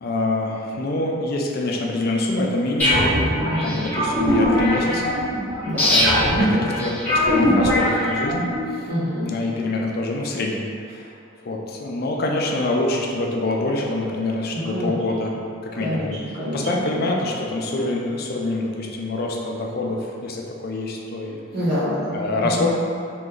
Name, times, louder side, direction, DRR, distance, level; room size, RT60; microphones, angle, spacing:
voice 1, 0.0-3.1 3.6-5.2 5.9-8.4 9.3-11.1 11.4-15.3 15.6-16.1 16.5-21.4 22.1-22.7, left 2 dB, 50° left, -1 dB, 0.4 m, -25 dB
sound 1, 2.8-8.6, equal, 10° left, 0.8 m, -21 dB
voice 2, 3.4-3.9 5.6-6.0 8.9-9.3 14.5-15.0 15.7-17.0 21.5-22.2 22.6-22.7, equal, 55° right, -15 dB, 1.1 m, -26 dB
3.0 x 2.5 x 3.7 m, 2.6 s
head